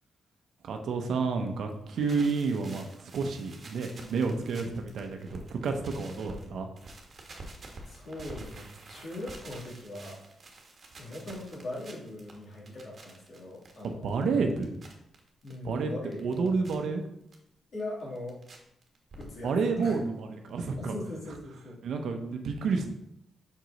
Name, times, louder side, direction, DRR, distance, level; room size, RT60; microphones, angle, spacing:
voice 1, 0.6-6.7 13.8-14.7 15.6-15.9 16.2-17.0 19.4-20.9 21.8-22.9, right 4 dB, 75° right, 4 dB, 0.7 m, -30 dB
sound 1, 1.8-6.5 6.8-15.5 15.9-16.8 17.3-17.4 17.8-18.6 18.8-19.6 19.9-20.0 20.2-20.3 20.5-20.6, right 2 dB, 45° right, 1.3 m, -48 dB
voice 2, 7.8-10.2 11.0-14.1 15.4-16.5 17.7-18.4 19.2-19.9 20.8-21.8, left 1 dB, 60° left, -4 dB, 2.5 m, -40 dB
5.4 x 4.7 x 4.0 m, 0.79 s
cardioid pair, 95°, 0 cm